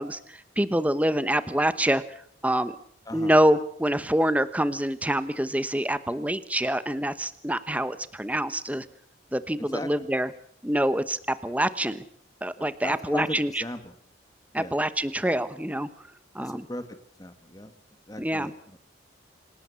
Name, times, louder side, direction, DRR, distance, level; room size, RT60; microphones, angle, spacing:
voice 1, 0.0-2.0 2.4-2.8 3.1-8.8 9.3-10.3 10.6-12.0 12.4-13.6 14.5-15.9 16.3-16.7 18.2-18.5, right 1 dB, 10° right, 13 dB, 1.0 m, -26 dB
voice 2, 9.6-10.1 12.6-13.9 14.6-14.8 16.4-17.7 18.1-18.9, left 1 dB, 20° left, 9 dB, 1.6 m, -38 dB
27.0 x 17.5 x 7.0 m, 0.65 s
head